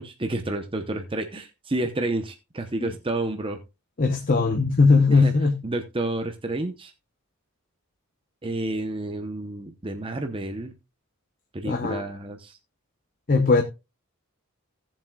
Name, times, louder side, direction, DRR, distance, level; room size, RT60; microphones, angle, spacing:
voice 1, 0.0-3.6 5.1-5.3 5.6-6.9 8.4-10.7 11.5-12.6, right 2 dB, 25° right, 0.8 m, -30 dB
voice 2, 4.0-5.6 11.6-12.0 13.3-13.6, left 4 dB, 40° left, 0.8 m, -19 dB
17.5 x 7.4 x 2.3 m
head